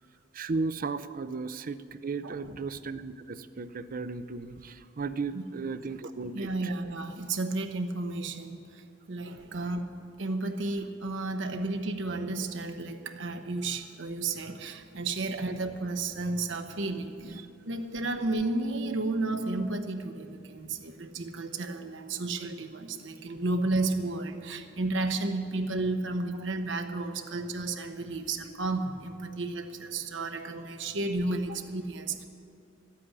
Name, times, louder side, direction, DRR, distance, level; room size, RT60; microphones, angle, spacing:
voice 1, 0.3-6.7 17.2-17.4, right 4 dB, 45° right, 13 dB, 0.5 m, -35 dB
voice 2, 2.2-2.6 5.3-5.7 6.3-32.2, right 2 dB, 70° right, 6 dB, 0.9 m, -32 dB
12.5 x 8.5 x 9.6 m, 2.4 s
head